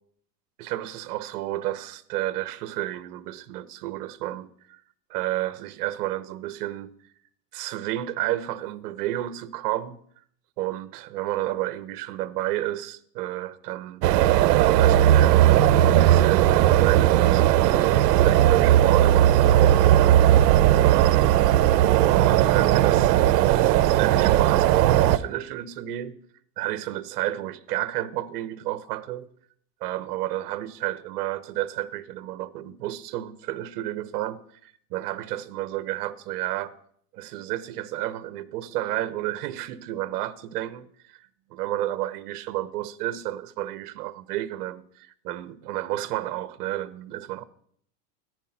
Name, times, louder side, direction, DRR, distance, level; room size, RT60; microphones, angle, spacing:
voice 1, 0.6-4.8 5.1-6.9 7.5-10.0 10.6-14.0 14.6-17.7 18.2-20.2 20.8-21.4 22.0-26.2 26.6-29.3 29.8-36.7 37.1-47.4, right 14 dB, 70° right, 1.1 m, -31 dB
sound 1, 14.0-25.2, right 12 dB, 85° right, 0.8 m, -18 dB
14.0 x 10.5 x 5.9 m
supercardioid pair, 155°, 48 cm